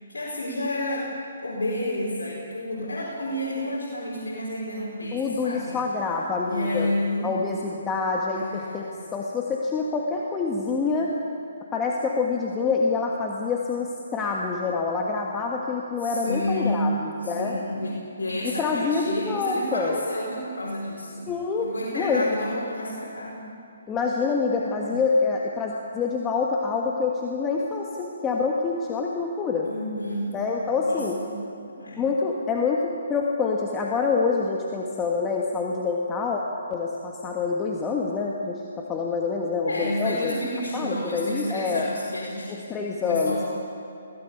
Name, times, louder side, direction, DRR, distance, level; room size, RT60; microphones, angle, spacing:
voice 1, 0.1-1.1 1.4-5.8 6.5-7.9 8.3-8.9 16.0-21.3 21.6-23.5 24.7-25.0 29.6-30.3 30.8-31.4 31.7-32.0 39.6-42.6 43.0-43.5, left 1 dB, 80° left, -5 dB, 4.6 m, -30 dB
voice 2, 5.1-6.9 7.2-11.1 11.7-17.6 18.4-20.0 21.3-21.7 21.9-22.2 23.9-29.7 30.3-31.2 32.0-36.4 36.7-40.3 40.7-41.9 42.7-43.5, left 4 dB, 15° left, -1 dB, 1.5 m, -26 dB
21.5 x 15.5 x 8.4 m, 2.6 s
hypercardioid pair, 150°, 0 cm